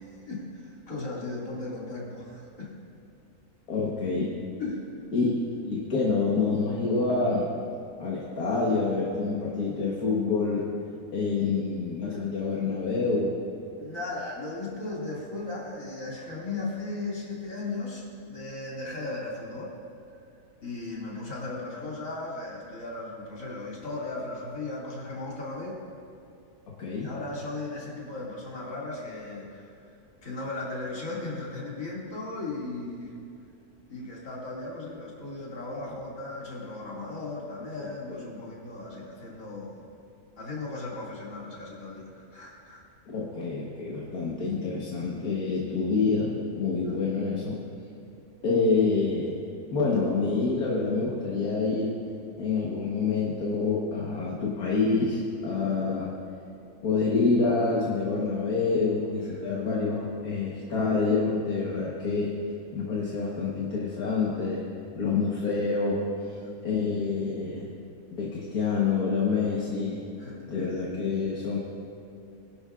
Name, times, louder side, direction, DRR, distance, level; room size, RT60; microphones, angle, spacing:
voice 1, 0.0-2.7 4.6-4.9 13.8-19.7 20.6-25.8 26.9-29.7 30.2-33.1 33.9-39.8 40.4-42.8 46.8-47.0 59.3-59.5 66.4-66.6 70.2-70.7, left 2 dB, 60° left, -5 dB, 2.9 m, -36 dB
voice 2, 3.7-4.3 5.1-5.3 5.6-7.5 8.0-10.7 11.1-13.4 26.8-27.1 37.8-38.2 43.1-47.6 48.4-49.4 49.7-52.0 52.4-56.1 56.8-62.3 62.7-64.7 65.0-66.3 66.6-67.7 68.1-70.0 70.5-71.6, left 4 dB, 80° left, -5 dB, 1.9 m, -27 dB
21.5 x 11.5 x 2.5 m, 2.7 s
omnidirectional pair, 1.6 m